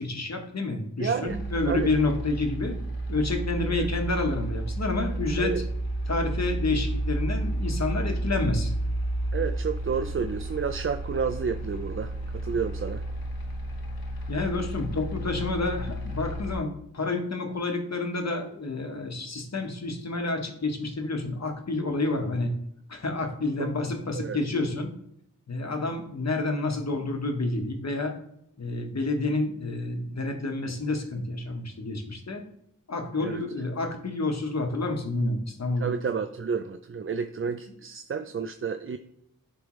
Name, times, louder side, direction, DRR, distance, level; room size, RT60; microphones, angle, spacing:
voice 1, 0.0-2.8 3.1-5.5 6.1-8.7 14.3-22.5 22.9-24.9 25.5-28.1 28.6-32.4 32.9-35.9, left 2 dB, 50° left, 4 dB, 1.2 m, -29 dB
voice 2, 1.0-1.4 1.6-1.9 3.7-3.9 5.4-5.6 9.3-13.0 23.6-23.7 24.2-24.4 33.2-33.4 35.8-39.0, right 6 dB, 40° right, 8 dB, 0.4 m, -30 dB
sound 1, 1.3-16.6, right 1 dB, 85° left, 1.0 m, -31 dB
9.7 x 3.4 x 3.1 m, 0.74 s
wide cardioid pair, 60°, 34 cm